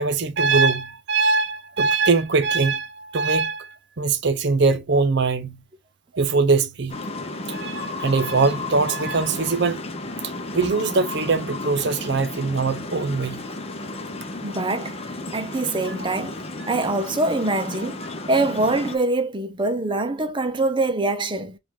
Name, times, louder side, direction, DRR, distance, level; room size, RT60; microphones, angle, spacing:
voice 1, 0.0-5.6 6.1-7.0 7.5-9.8 10.5-13.4, right 4 dB, 55° right, 0.7 m, -22 dB
sound 1, 6.9-19.0, left 2 dB, 30° left, 0.7 m, -33 dB
voice 2, 14.4-15.0 15.3-16.3 16.7-21.6, right 2 dB, 25° right, 0.6 m, -24 dB
4.9 x 2.5 x 3.5 m
head